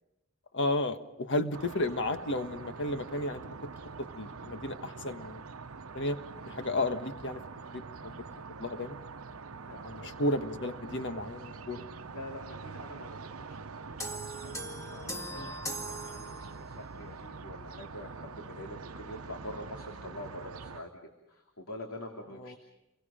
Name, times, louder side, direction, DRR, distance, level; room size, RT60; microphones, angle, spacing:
voice 1, 0.5-3.6 4.0-5.4 5.9-6.2 6.5-7.4 7.7-8.2 8.6-9.0 9.8-11.8 15.3-15.6 22.4-22.6, left 1 dB, 60° left, 8 dB, 1.5 m, -33 dB
sound 1, 1.5-20.8, right 4 dB, 75° right, 0.9 m, -45 dB
voice 2, 9.5-10.2 10.8-10.9 12.1-22.6, left 1 dB, 80° left, 2 dB, 3.0 m, -46 dB
sound 2, 14.0-16.9, right 1 dB, 15° left, 2.1 m, -40 dB
29.5 x 23.0 x 5.1 m, 0.96 s
head